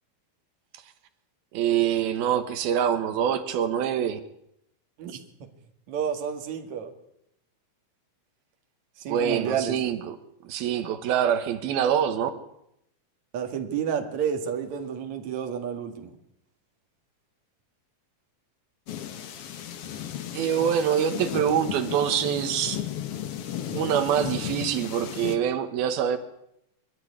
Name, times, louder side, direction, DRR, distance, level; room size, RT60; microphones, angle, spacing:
voice 1, 1.5-4.2 9.1-10.2 10.4-12.3 20.3-22.8 23.7-26.2, right 9 dB, 80° right, 10 dB, 3.1 m, -25 dB
voice 2, 5.9-6.9 9.0-9.8 13.3-16.1, right 7 dB, 55° right, 5 dB, 3.1 m, -30 dB
sound 1, 18.9-25.4, left 10 dB, 60° left, 1.6 m, -35 dB
23.0 x 13.0 x 9.8 m, 0.77 s
omnidirectional pair, 4.3 m